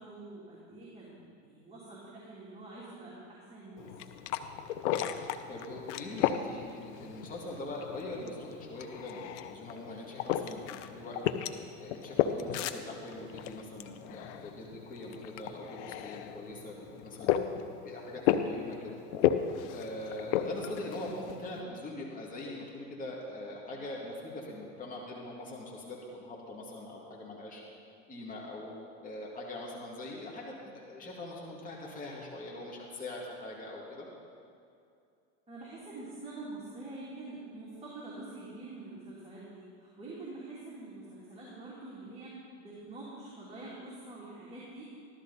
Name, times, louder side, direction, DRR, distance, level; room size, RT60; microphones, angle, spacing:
voice 1, 0.0-3.9 35.5-44.9, right 2 dB, 20° right, -8 dB, 3.1 m, -46 dB
sound 1, 3.8-21.6, left 10 dB, 80° left, 0.8 m, -35 dB
voice 2, 5.0-11.2 11.8-17.4 17.8-19.0 19.7-27.6 28.1-28.7 29.0-34.1, left 1 dB, 25° left, -4 dB, 2.5 m, -42 dB
14.5 x 12.5 x 4.2 m, 2.4 s
supercardioid pair, 115°, 34 cm